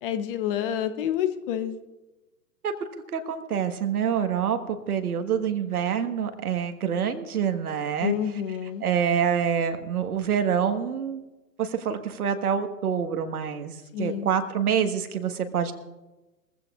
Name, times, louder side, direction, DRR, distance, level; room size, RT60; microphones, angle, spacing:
voice 1, 0.0-1.8 8.0-8.8 13.9-14.3, left 10 dB, 35° left, 10 dB, 1.0 m, -28 dB
voice 2, 2.6-8.2 8.8-11.2 11.6-15.7, right 8 dB, 65° right, 8 dB, 1.6 m, -26 dB
22.0 x 15.5 x 2.4 m, 1.1 s
hypercardioid pair, 120°, 47 cm